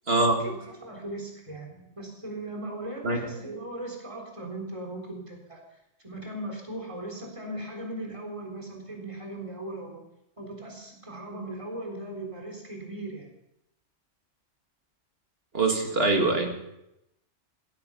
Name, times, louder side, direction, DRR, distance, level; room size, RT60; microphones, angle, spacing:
voice 1, 0.4-5.6 6.0-10.0 10.4-13.3, right 1 dB, 25° right, 0 dB, 3.9 m, -38 dB
voice 2, 15.5-16.6, right 2 dB, 50° right, 3 dB, 2.5 m, -23 dB
16.5 x 15.0 x 5.5 m, 0.84 s
omnidirectional pair, 1.3 m